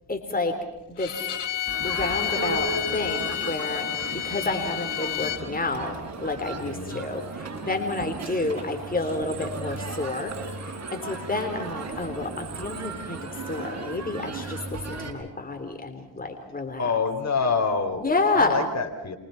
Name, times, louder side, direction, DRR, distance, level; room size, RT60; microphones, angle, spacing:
voice 1, 0.1-0.6 1.0-1.1 1.8-3.9 4.2-10.3 10.6-13.2 13.5-16.8 18.0-18.6, left 3 dB, 20° left, 5 dB, 3.8 m, -29 dB
Bowed string instrument, 1.0-5.4, left 13 dB, 75° left, 3.1 m, -30 dB
Crowd, 1.7-15.1, right 3 dB, 40° right, 6.0 m, -35 dB
voice 2, 6.6-7.0 16.8-18.1 18.3-19.2, left 4 dB, 40° left, 4 dB, 4.2 m, -26 dB
29.0 x 25.0 x 5.9 m, 0.94 s
supercardioid pair, 65°, 42 cm